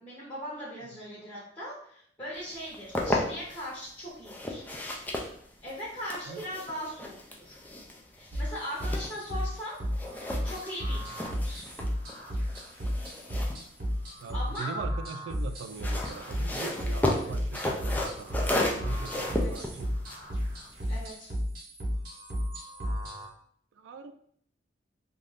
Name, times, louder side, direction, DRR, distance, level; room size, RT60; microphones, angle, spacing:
voice 1, 0.0-4.6 5.6-7.6 8.1-9.7 10.4-11.7 14.3-14.8 17.1-17.3 19.3-19.6 20.9-21.3, equal, 25° left, -9 dB, 0.9 m, -39 dB
sound 1, 2.5-3.7 4.2-9.6 9.9-14.6 15.6-21.1, left 1 dB, 10° left, 0.3 m, -34 dB
sound 2, 8.3-23.3, equal, 55° right, 0.8 m, -33 dB
voice 2, 14.2-19.9 23.7-24.1, right 5 dB, 80° right, 8 dB, 0.3 m, -41 dB
2.5 x 2.3 x 3.4 m, 0.65 s
head